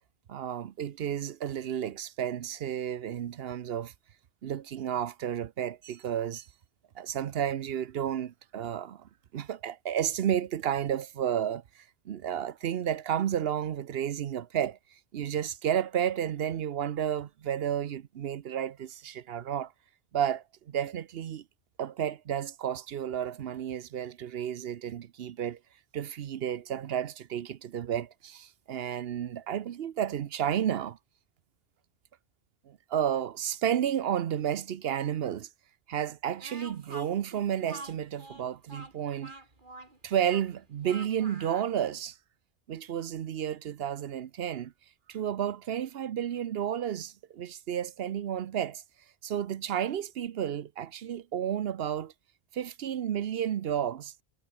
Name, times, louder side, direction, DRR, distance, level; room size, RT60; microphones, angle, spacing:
voice 1, 0.3-3.9 4.4-6.5 7.0-14.8 15.1-19.7 20.1-21.4 21.8-25.6 25.9-31.0 32.7-35.5 35.9-39.3 40.0-42.2 42.7-44.7 45.1-48.8 49.2-52.1 52.5-54.1, right 9 dB, 70° right, 0.9 m, -32 dB
Speech, 36.4-41.7, right 2 dB, 50° right, 3.5 m, -46 dB
omnidirectional pair, 1.1 m